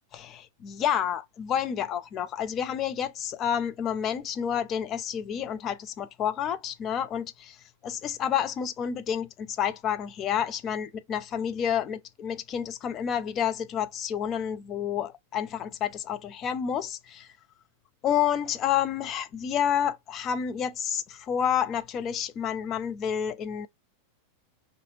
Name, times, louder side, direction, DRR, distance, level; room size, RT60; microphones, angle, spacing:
voice 1, 0.1-7.6 7.8-17.3 18.0-23.7, left 9 dB, 30° left, 0.4 m, -29 dB
2.6 x 2.3 x 2.8 m
figure-of-eight pair, 90°, 0 cm